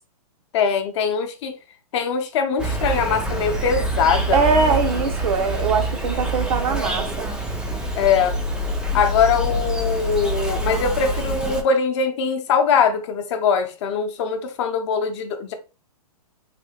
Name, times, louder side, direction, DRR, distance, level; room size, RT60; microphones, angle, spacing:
voice 1, 0.5-1.5 1.9-4.5 8.0-8.3 8.9-15.5, left 6 dB, 45° left, 0.7 m, -22 dB
Insect, 2.6-11.6, right 1 dB, 5° right, 0.4 m, -25 dB
voice 2, 4.3-7.3, right 4 dB, 65° right, 0.7 m, -22 dB
3.3 x 2.7 x 2.8 m
hypercardioid pair, 140°, 20 cm